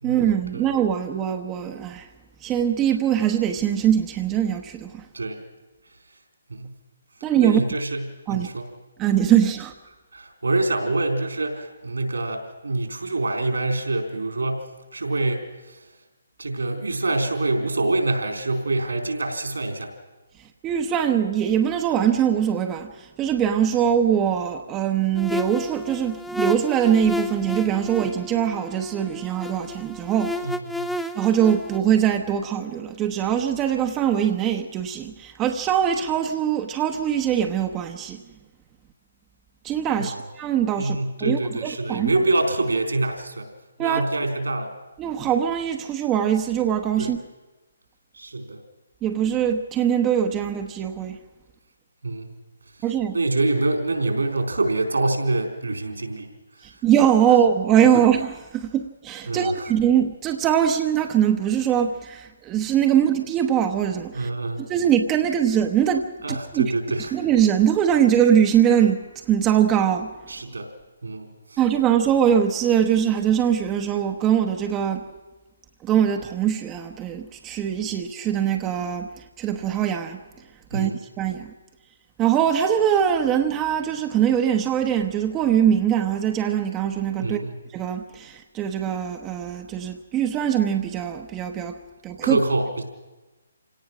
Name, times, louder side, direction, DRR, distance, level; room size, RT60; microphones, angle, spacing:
voice 1, 0.0-2.1 2.4-5.0 7.2-7.6 8.3-8.5 9.0-9.7 20.6-30.3 31.2-38.2 39.6-42.1 43.8-44.0 45.0-47.2 49.0-51.2 52.8-53.2 56.8-64.3 64.6-66.7 67.1-69.0 69.3-70.1 71.6-75.0 75.8-79.1 79.4-80.2 80.7-80.9 81.2-81.5 82.2-87.4 87.7-91.8 92.0-92.4, right 9 dB, 20° right, 4 dB, 1.0 m, -22 dB
voice 2, 7.4-8.0 8.3-8.7 10.1-14.6 14.9-15.8 16.4-19.9 30.4-30.9 40.0-40.2 40.8-43.5 43.8-44.7 47.0-47.1 48.2-48.6 52.0-52.3 53.1-56.3 59.3-59.5 64.1-64.6 66.2-67.2 70.3-70.7 71.0-71.6 80.7-81.0 87.2-87.5 92.2-92.8, right 2 dB, 80° right, 4 dB, 4.1 m, -25 dB
sound 1, 25.1-31.8, left 1 dB, 5° left, 0.7 m, -32 dB
27.0 x 17.5 x 6.2 m, 1.2 s
figure-of-eight pair, 140°, 0 cm